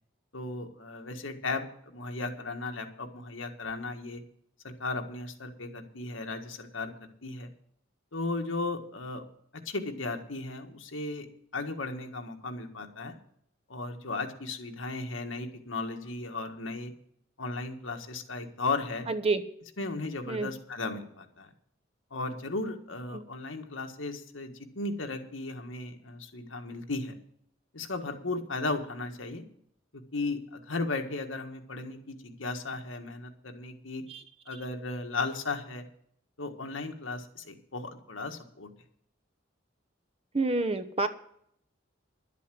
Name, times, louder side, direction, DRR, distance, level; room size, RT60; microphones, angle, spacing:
voice 1, 0.3-4.2 4.6-7.5 8.1-9.2 9.5-11.3 11.5-13.1 13.7-16.9 17.4-19.1 19.8-21.5 22.1-27.2 27.7-29.4 29.9-34.0 34.5-35.8 36.4-38.7, left 3 dB, 90° left, 4 dB, 1.7 m, -36 dB
voice 2, 19.1-19.4 20.3-20.5 23.1-23.2 34.1-34.2 40.3-41.1, right 3 dB, 30° right, 11 dB, 0.9 m, -28 dB
12.0 x 8.4 x 7.7 m, 0.68 s
head